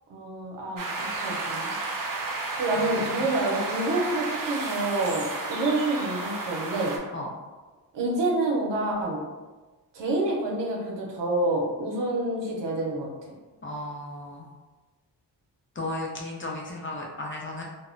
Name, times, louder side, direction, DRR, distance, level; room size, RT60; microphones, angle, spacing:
voice 1, 0.1-1.7 2.6-6.9 7.9-9.2 9.9-13.1, right 2 dB, 85° right, -2 dB, 0.7 m, -28 dB
sound 1, 0.8-7.0, right 3 dB, 50° right, 0.5 m, -32 dB
voice 2, 2.8-3.4 7.1-7.3 13.6-14.5 15.8-17.6, left 1 dB, 30° left, -2 dB, 0.4 m, -35 dB
2.1 x 2.0 x 3.6 m, 1.2 s
wide cardioid pair, 95°, 42 cm